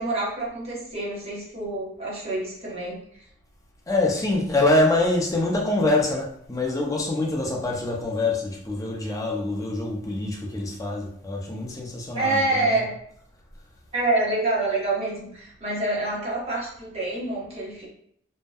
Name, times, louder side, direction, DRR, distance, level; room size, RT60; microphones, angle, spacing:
voice 1, 0.0-3.0 12.1-12.9 13.9-17.9, right 2 dB, 35° right, -5 dB, 0.9 m, -27 dB
voice 2, 3.9-12.8, left 2 dB, 20° left, -1 dB, 0.4 m, -25 dB
2.6 x 2.1 x 2.2 m, 0.68 s
head